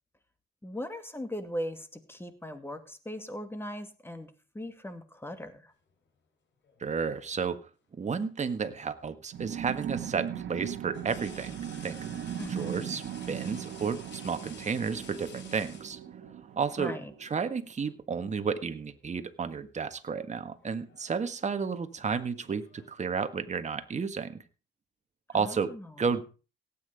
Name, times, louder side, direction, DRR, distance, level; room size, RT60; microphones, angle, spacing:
voice 1, 0.6-5.7 12.4-12.9 16.8-17.1 25.3-25.8, equal, 10° left, 8 dB, 2.4 m, -39 dB
sound 1, 6.6-7.5 9.2-9.4 10.9-16.4 17.6-17.8 18.2-19.0 19.2-19.6 20.5-23.1, left 6 dB, 65° left, 4.7 m, -53 dB
voice 2, 6.8-7.7 8.0-12.0 12.5-16.0 16.5-24.4 25.3-26.2, right 5 dB, 35° right, 9 dB, 1.6 m, -32 dB
sound 2, 9.3-17.5, right 9 dB, 65° right, 1.5 m, -39 dB
17.0 x 9.0 x 5.0 m, 0.34 s
cardioid pair, 90°, 20 cm